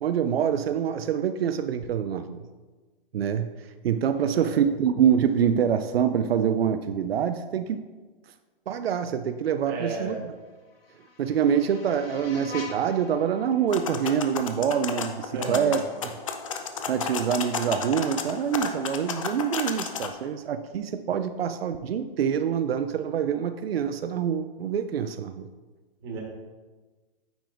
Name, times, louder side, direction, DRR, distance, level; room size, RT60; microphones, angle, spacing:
voice 1, 0.0-2.4 3.1-3.5 3.8-7.8 8.7-10.3 11.2-15.8 16.9-25.5, right 8 dB, 85° right, 9 dB, 0.5 m, -25 dB
voice 2, 4.2-4.6 9.6-10.2 15.3-15.8 26.0-26.2, right 3 dB, 25° right, -2 dB, 1.4 m, -33 dB
sound 1, 10.3-15.3, left 5 dB, 80° left, 1.4 m, -45 dB
sound 2, 13.7-20.1, left 6 dB, 35° left, 0.4 m, -33 dB
9.1 x 5.0 x 2.5 m, 1.3 s
hypercardioid pair, 160°, 29 cm